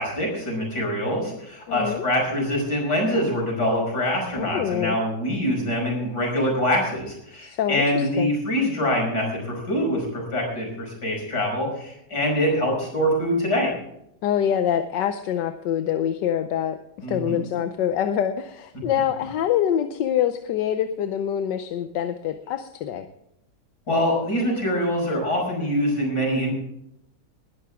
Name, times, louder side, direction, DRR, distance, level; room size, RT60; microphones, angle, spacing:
voice 1, 0.0-13.7 17.0-17.4 23.9-26.5, equal, 65° left, 0 dB, 6.1 m, -24 dB
voice 2, 1.7-2.0 4.4-5.0 7.4-8.3 14.2-23.1, left 9 dB, 85° left, 8 dB, 1.4 m, -25 dB
20.0 x 12.0 x 3.6 m, 0.78 s
omnidirectional pair, 1.8 m